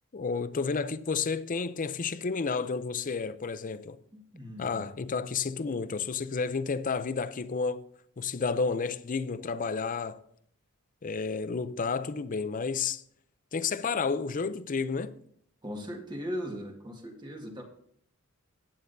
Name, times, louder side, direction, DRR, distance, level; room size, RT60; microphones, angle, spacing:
voice 1, 0.1-4.0 4.6-7.8 8.2-10.2 11.0-13.0 13.5-15.1, left 5 dB, 40° left, 0.5 m, -31 dB
voice 2, 4.3-4.9 15.6-17.6, equal, 20° right, 1.6 m, -38 dB
16.0 x 9.4 x 2.7 m
head